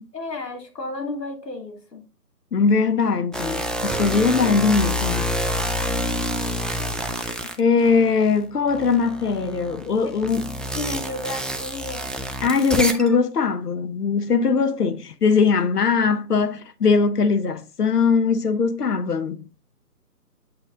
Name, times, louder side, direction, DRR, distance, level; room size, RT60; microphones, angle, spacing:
voice 1, 0.1-2.0 10.0-10.1 10.7-12.1, left 2 dB, 85° left, 2.6 m, -32 dB
voice 2, 2.5-5.3 7.2-10.5 12.4-19.5, left 5 dB, 70° left, 1.0 m, -21 dB
sound 1, 3.3-8.3 8.7-13.2, equal, ahead, 0.3 m, -27 dB
7.7 x 6.2 x 2.5 m
figure-of-eight pair, 155°, 48 cm